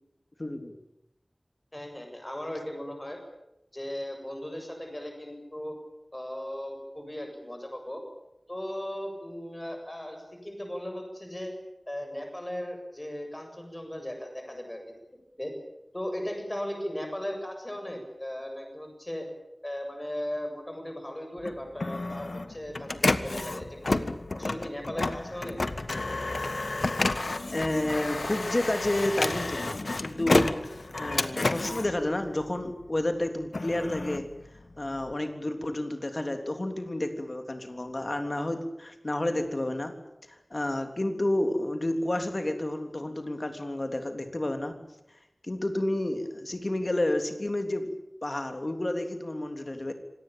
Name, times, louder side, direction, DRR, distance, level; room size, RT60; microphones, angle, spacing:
voice 1, 0.4-0.7 27.5-30.6 31.0-34.3 34.8-40.0 40.3-44.8 45.4-48.0 48.2-49.9, left 1 dB, 45° left, 6 dB, 3.4 m, -30 dB
voice 2, 1.7-3.2 3.7-5.7 6.1-8.0 8.5-11.5 11.9-14.8 15.4-15.5 15.9-19.3 19.6-24.0 24.3-25.6, left 1 dB, 25° left, 4 dB, 7.5 m, -37 dB
Printer, 21.4-32.8 33.3-35.1, left 2 dB, 75° left, 1.4 m, -30 dB
26.0 x 18.5 x 8.9 m, 0.87 s
wide cardioid pair, 55°, 0 cm